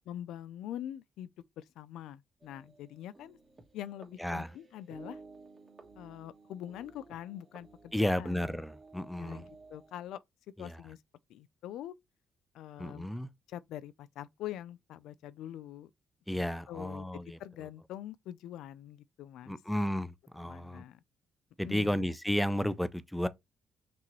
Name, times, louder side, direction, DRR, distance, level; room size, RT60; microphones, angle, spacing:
voice 1, 0.1-1.3 1.6-3.4 3.7-5.2 6.0-8.6 9.2-10.2 10.6-11.0 11.3-11.9 12.5-13.1 13.5-15.9 16.3-19.5 20.4-21.0 21.6-22.1, left 12 dB, 85° left, 0.3 m, -44 dB
sound 1, 2.4-10.0, right 3 dB, 25° right, 1.5 m, -55 dB
voice 2, 7.9-9.5 10.6-10.8 12.8-13.3 16.3-17.4 19.5-20.8 21.6-23.3, equal, ahead, 0.4 m, -33 dB
5.9 x 2.9 x 3.1 m
cardioid pair, 90°, 0 cm